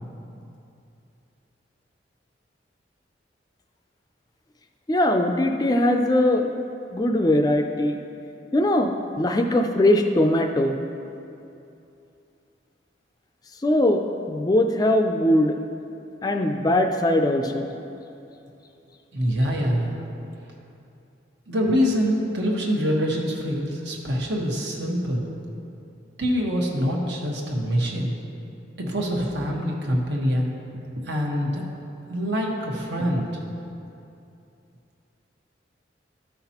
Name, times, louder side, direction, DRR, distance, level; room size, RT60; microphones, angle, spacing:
voice 1, 4.9-8.0 8.5-8.9 9.2-10.8 13.6-14.0 14.3-15.5 16.2-17.7, left 1 dB, 20° left, 4 dB, 0.3 m, -21 dB
voice 2, 19.1-20.0 21.5-25.3 26.2-28.1 28.8-30.5 31.0-31.7 32.1-33.4, equal, 75° right, -1 dB, 1.3 m, -25 dB
13.0 x 5.8 x 2.9 m, 2.7 s
head